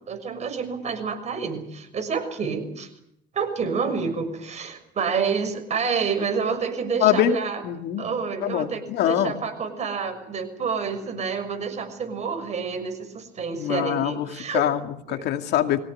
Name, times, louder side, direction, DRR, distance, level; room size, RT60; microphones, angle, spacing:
voice 1, 0.0-2.9 3.3-7.6 8.0-14.7 15.1-15.2, right 5 dB, 40° right, 6 dB, 6.4 m, -28 dB
voice 2, 7.0-7.4 7.6-8.0 8.4-9.3 13.6-15.8, left 11 dB, 80° left, 6 dB, 2.3 m, -24 dB
24.0 x 17.0 x 9.6 m, 0.73 s
cardioid pair, 110°, 17 cm